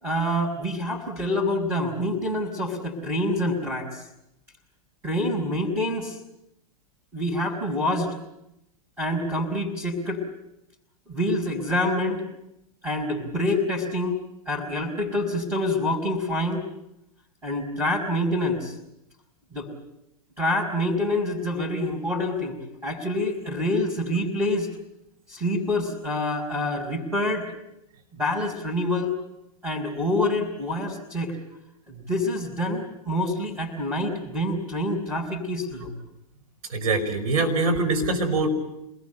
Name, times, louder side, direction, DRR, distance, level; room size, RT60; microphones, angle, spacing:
voice 1, 0.0-4.0 5.0-6.2 7.1-8.1 9.0-10.2 11.1-12.2 12.8-14.2 14.5-16.6 17.4-18.8 19.5-19.7 20.4-24.7 25.3-27.5 28.2-29.1 29.6-31.4 31.9-35.9, left 1 dB, 10° right, -3 dB, 5.6 m, -26 dB
voice 2, 36.7-38.5, right 2 dB, 65° right, 5 dB, 5.7 m, -23 dB
27.0 x 20.5 x 8.1 m, 0.85 s
hypercardioid pair, 110°, 19 cm